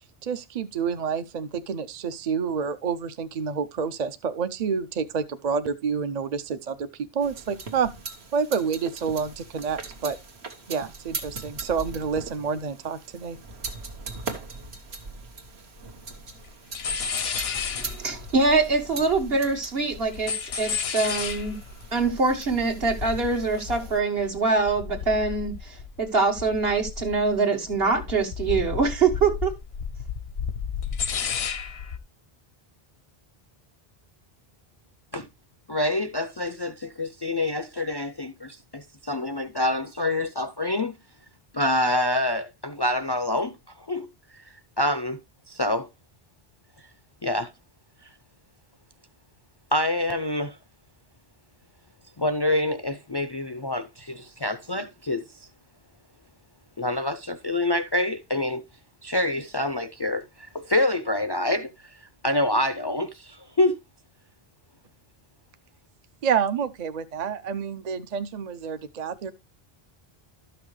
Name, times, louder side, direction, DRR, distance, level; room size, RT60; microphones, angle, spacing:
voice 1, 0.2-6.9 7.1-7.9 8.3-10.2 10.7-13.4 66.2-69.3, right 6 dB, 50° right, 0.6 m, -28 dB
sound 1, 7.2-24.0, right 4 dB, 90° right, 1.6 m, -40 dB
sound 2, 15.8-15.9 16.1-16.5 16.7-19.5 19.8-26.1 26.4-27.4 27.7-32.0, left 6 dB, 80° left, 1.1 m, -33 dB
voice 2, 17.8-21.6 21.9-29.5, right 4 dB, 70° right, 1.8 m, -24 dB
voice 3, 35.7-40.9 41.5-44.1 44.8-45.2 45.5-45.9 47.2-47.5 49.7-50.6 52.2-55.2 56.8-58.6 59.0-61.9 62.2-63.8, left 1 dB, 35° left, 0.4 m, -26 dB
12.5 x 6.0 x 3.1 m
omnidirectional pair, 1.0 m